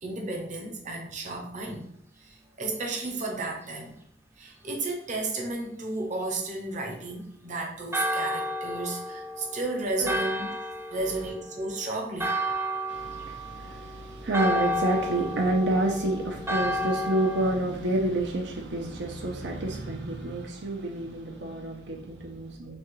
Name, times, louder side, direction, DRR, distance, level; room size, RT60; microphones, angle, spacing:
voice 1, 0.0-4.0 4.4-10.5 10.9-12.4, right 2 dB, 45° right, 1 dB, 0.8 m, -33 dB
Church bell, 7.9-17.6, equal, 15° right, 0.4 m, -32 dB
voice 2, 12.9-22.8, right 2 dB, 85° right, 2 dB, 0.7 m, -29 dB
6.1 x 2.3 x 3.1 m, 0.67 s
head